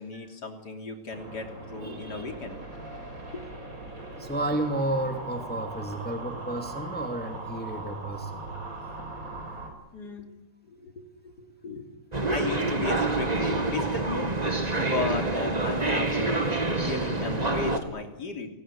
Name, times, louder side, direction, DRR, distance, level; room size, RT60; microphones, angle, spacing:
voice 1, 0.0-2.6 3.3-3.8 4.2-4.3 9.9-10.3 10.7-11.9 12.3-14.3 14.8-16.4 16.7-18.5, left 3 dB, 55° left, 4 dB, 3.7 m, -35 dB
sound 1, 1.1-9.7, right 2 dB, 40° right, 5.9 m, -40 dB
voice 2, 1.8-2.2 4.2-8.5, right 1 dB, 5° left, 4 dB, 2.6 m, -32 dB
sound 2, 12.1-17.8, right 2 dB, 20° right, 2.2 m, -27 dB
29.0 x 19.0 x 10.0 m, 1.0 s
omnidirectional pair, 2.2 m